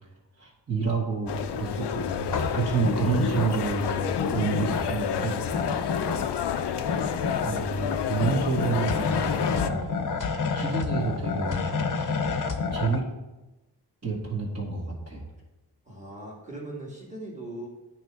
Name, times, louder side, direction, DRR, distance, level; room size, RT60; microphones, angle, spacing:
voice 1, 0.4-2.2 2.5-5.4 7.4-9.8 10.5-11.7 12.7-13.0 14.0-15.2, right 4 dB, 40° right, -6 dB, 2.0 m, -29 dB
sound 1, 1.3-9.7, left 8 dB, 80° left, 0.5 m, -30 dB
sound 2, 2.3-13.0, left 5 dB, 50° left, 0.7 m, -30 dB
voice 2, 15.9-17.7, right 1 dB, 15° right, -4 dB, 2.2 m, -40 dB
9.1 x 3.1 x 4.8 m, 1.0 s
cardioid pair, 55°, 41 cm